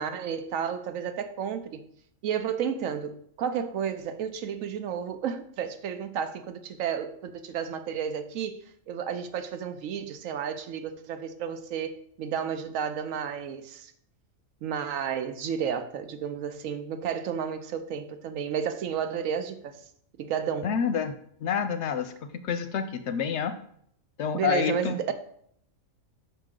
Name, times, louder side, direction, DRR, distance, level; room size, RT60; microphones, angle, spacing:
voice 1, 0.0-1.8 2.2-13.9 14.6-19.8 20.2-20.7 24.3-25.1, right 7 dB, 80° right, 1.0 m, -32 dB
voice 2, 20.6-21.1 21.4-22.1 22.4-23.5 24.2-24.9, left 7 dB, 65° left, 0.8 m, -28 dB
5.9 x 5.0 x 3.7 m
omnidirectional pair, 1.4 m